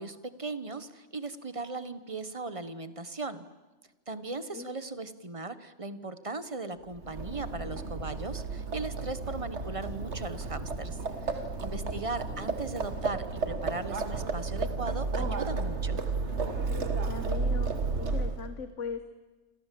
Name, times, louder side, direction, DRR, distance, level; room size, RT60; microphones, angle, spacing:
voice 1, 0.0-3.5 4.1-16.0, right 3 dB, 25° right, 12 dB, 1.2 m, -38 dB
Livestock farm animals working animals, 6.9-18.5, right 3 dB, 65° right, 1.9 m, -32 dB
voice 2, 11.6-12.5 17.1-17.7 18.0-19.0, left 5 dB, 75° left, 10 dB, 1.4 m, -40 dB
27.5 x 27.0 x 7.6 m, 1.2 s
omnidirectional pair, 1.3 m